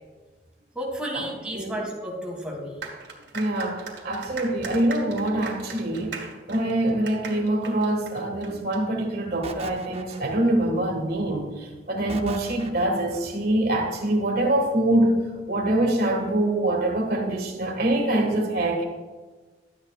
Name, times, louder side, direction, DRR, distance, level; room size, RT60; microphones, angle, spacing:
voice 1, 0.8-2.8, equal, 5° right, -1 dB, 1.9 m, -32 dB
sound 1, 2.8-8.8, right 5 dB, 85° right, 2.0 m, -39 dB
voice 2, 3.3-6.2 6.5-15.2 15.5-18.8, right 1 dB, 60° right, 1 dB, 1.7 m, -24 dB
sound 2, 9.4-10.7 12.1-13.2, right 3 dB, 35° right, 0.6 m, -38 dB
12.0 x 8.9 x 2.4 m, 1.3 s
head